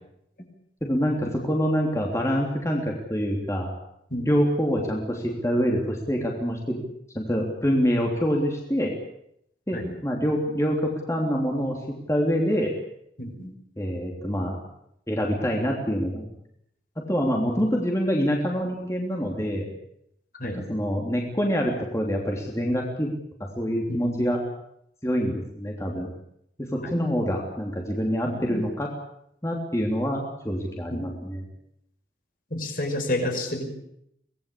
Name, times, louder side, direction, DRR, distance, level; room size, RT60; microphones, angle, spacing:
voice 1, 0.8-3.7 4.3-6.8 7.1-8.9 9.7-12.7 13.8-14.6 15.1-16.3 17.0-19.7 20.4-23.1 23.6-24.4 25.0-26.1 26.6-28.9 29.4-31.4, equal, 15° left, 0 dB, 3.3 m, -26 dB
voice 2, 13.2-13.5 20.4-20.7 23.9-24.3 26.8-27.0 28.3-28.6 30.9-31.0 32.5-33.7, left 1 dB, 50° left, 4 dB, 5.6 m, -30 dB
25.0 x 19.0 x 8.6 m, 0.76 s
head